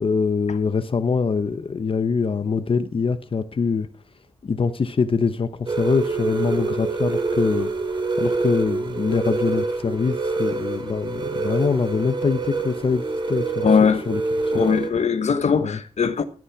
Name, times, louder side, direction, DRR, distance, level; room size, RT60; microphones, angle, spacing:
voice 1, 0.0-3.9 4.4-7.7 8.2-13.7 14.1-14.2 14.5-14.6 15.6-15.8, left 5 dB, 55° left, 0.8 m, -24 dB
sound 1, 5.7-14.9, right 3 dB, 45° right, 2.5 m, -26 dB
voice 2, 13.6-14.0 14.5-16.2, left 6 dB, 85° left, 1.1 m, -20 dB
14.0 x 8.7 x 5.9 m
wide cardioid pair, 135°, 11 cm